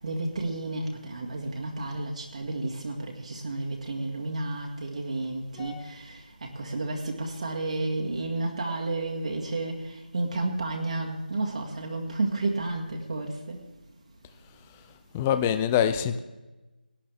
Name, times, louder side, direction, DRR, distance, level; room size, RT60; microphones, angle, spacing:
voice 1, 0.0-6.2 6.5-13.6, right 2 dB, 45° right, 0 dB, 1.7 m, -31 dB
voice 2, 5.6-5.9 15.1-16.2, left 9 dB, 10° left, 10 dB, 0.3 m, -25 dB
18.0 x 11.0 x 3.4 m, 1.1 s
figure-of-eight pair, 165°, 5 cm